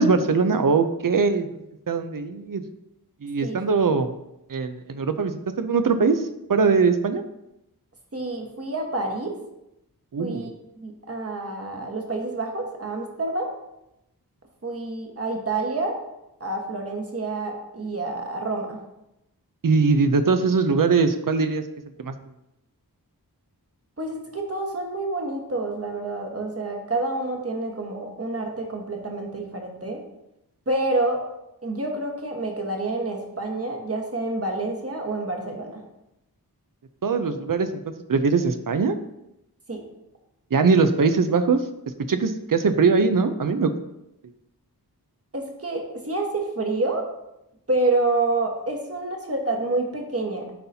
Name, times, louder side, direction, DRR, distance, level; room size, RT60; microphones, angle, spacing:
voice 1, 0.0-1.5 1.9-2.6 3.2-4.1 4.5-7.2 10.1-10.5 19.6-21.6 22.0-22.1 37.0-39.0 40.5-41.6 42.1-43.8, right 4 dB, 55° right, 9 dB, 0.6 m, -21 dB
voice 2, 8.1-9.4 10.2-10.5 10.8-13.5 14.6-16.0 16.4-18.8 24.0-30.0 30.7-31.2 31.6-35.8 39.7-39.8 45.3-47.0 47.7-50.5, right 2 dB, 35° right, 1 dB, 1.3 m, -28 dB
11.0 x 4.0 x 2.8 m, 0.87 s
wide cardioid pair, 55°, 38 cm